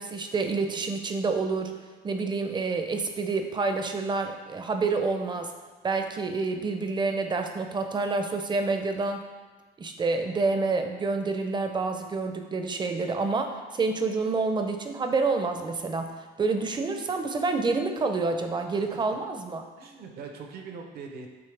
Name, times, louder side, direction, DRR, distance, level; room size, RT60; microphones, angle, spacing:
voice 1, 0.0-1.7 2.0-5.5 5.8-9.2 9.8-19.6, right 3 dB, 25° right, 6 dB, 0.6 m, -28 dB
voice 2, 18.7-19.2 19.8-21.3, right 5 dB, 70° right, 3 dB, 0.9 m, -42 dB
8.7 x 3.2 x 3.4 m, 1.4 s
cardioid pair, 110°, 17 cm